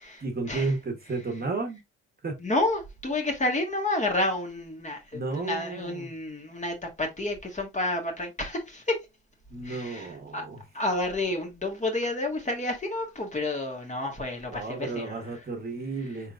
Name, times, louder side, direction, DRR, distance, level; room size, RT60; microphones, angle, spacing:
voice 1, 0.2-1.8 2.2-2.4 5.1-6.1 9.5-10.7 14.5-16.3, right 3 dB, 30° right, 1.1 m, -33 dB
voice 2, 2.4-5.0 5.3-9.0 9.6-10.1 10.3-10.4 10.7-15.1, left 2 dB, 25° left, 1.6 m, -30 dB
4.3 x 3.7 x 2.4 m
cardioid pair, 90°, 30 cm